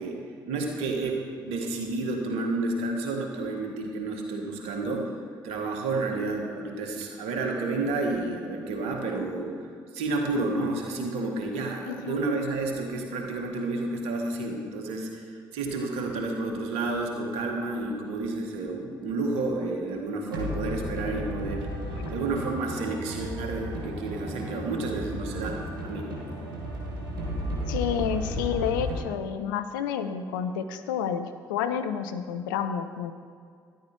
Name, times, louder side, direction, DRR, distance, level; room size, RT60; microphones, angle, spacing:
voice 1, 0.0-5.2 5.4-9.7 9.9-26.1, right 3 dB, 70° right, 2 dB, 1.6 m, -30 dB
voice 2, 11.9-12.2 21.9-22.0 27.7-33.1, left 8 dB, 75° left, 9 dB, 0.6 m, -30 dB
sound 1, 15.6-29.0, equal, 85° right, 1.4 m, -35 dB
13.0 x 10.5 x 4.5 m, 2.1 s
figure-of-eight pair, 40°, 11 cm